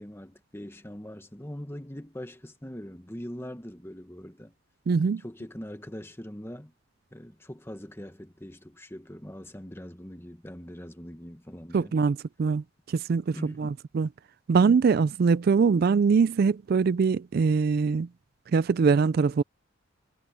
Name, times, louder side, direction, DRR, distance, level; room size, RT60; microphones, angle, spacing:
voice 1, 0.0-4.5 5.2-6.7 7.1-11.9 13.3-13.7, equal, 10° left, 1.3 m, -42 dB
voice 2, 4.9-5.2 11.7-14.1 14.5-18.1 18.5-19.4, right 5 dB, 50° right, 0.3 m, -23 dB
head